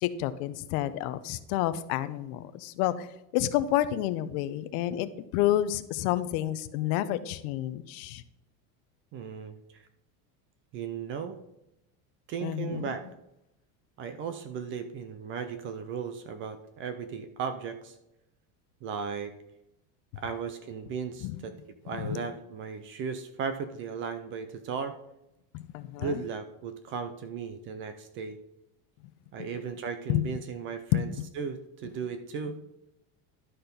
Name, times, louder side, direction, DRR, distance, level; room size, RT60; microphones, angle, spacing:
voice 1, 0.0-3.1 3.3-8.2 12.4-12.9 21.2-21.4 21.9-22.2 25.5-26.2 29.4-29.5 30.1-30.3 30.9-31.2, left 13 dB, 65° left, 14 dB, 0.8 m, -29 dB
voice 2, 9.1-9.9 10.7-11.4 12.3-13.0 14.0-18.0 18.8-19.3 20.2-21.5 21.8-25.0 26.0-28.4 29.3-31.1 31.4-32.6, right 6 dB, 30° right, 10 dB, 0.4 m, -36 dB
11.5 x 4.3 x 5.2 m, 0.87 s
cardioid pair, 165°, 46 cm